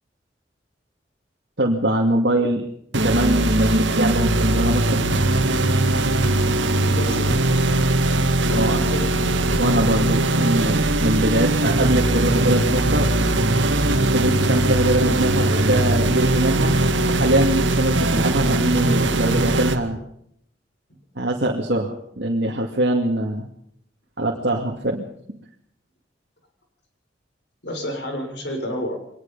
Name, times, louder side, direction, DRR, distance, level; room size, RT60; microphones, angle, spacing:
voice 1, 1.6-2.6 2.9-5.1 8.5-8.8 9.6-13.1 14.1-16.8 17.1-20.0 21.2-23.5 24.2-25.1, right 1 dB, 65° right, 0 dB, 2.4 m, -22 dB
sound 1, 2.9-19.8, right 2 dB, 85° right, 2.1 m, -20 dB
voice 2, 6.7-7.4 8.5-9.1 13.9-14.0 27.6-29.0, equal, 65° left, 4 dB, 6.6 m, -30 dB
24.0 x 19.5 x 5.6 m, 0.70 s
head